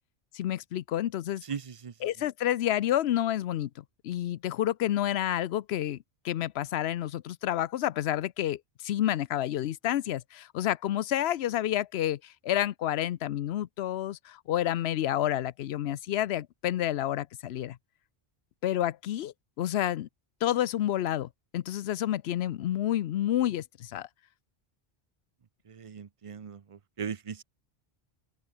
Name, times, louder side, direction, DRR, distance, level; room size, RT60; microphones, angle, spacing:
voice 1, 0.3-1.4 2.0-3.7 4.0-6.0 6.2-12.2 12.4-17.8 18.6-20.1 20.4-24.1, left 12 dB, 85° left, 0.9 m, -29 dB
voice 2, 1.4-1.9 25.7-27.4, right 6 dB, 35° right, 0.7 m, -39 dB
open air
omnidirectional pair, 1.1 m